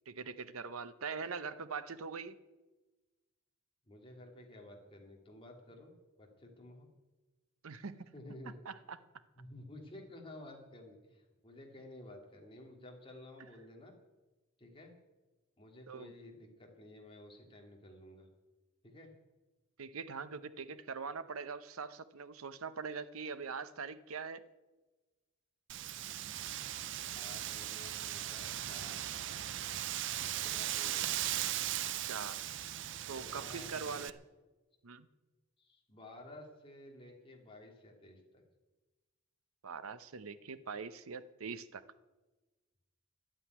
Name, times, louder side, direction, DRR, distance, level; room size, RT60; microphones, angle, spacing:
voice 1, 0.1-2.4 7.6-8.1 8.7-9.0 15.9-16.1 19.8-24.4 25.8-26.3 32.0-32.4 33.1-34.2 34.8-35.1 39.6-41.8, right 5 dB, 85° right, 13 dB, 0.8 m, -43 dB
voice 2, 3.9-5.9 6.2-6.9 8.1-8.6 9.4-13.9 14.6-14.9 15.6-18.3 18.8-19.1 27.1-29.0 30.2-31.0 33.1-34.1 35.6-38.4, left 1 dB, 25° left, 1 dB, 2.4 m, -53 dB
Wind, 25.7-34.1, right 12 dB, 60° right, 0.5 m, -38 dB
12.0 x 9.0 x 9.4 m, 1.2 s
head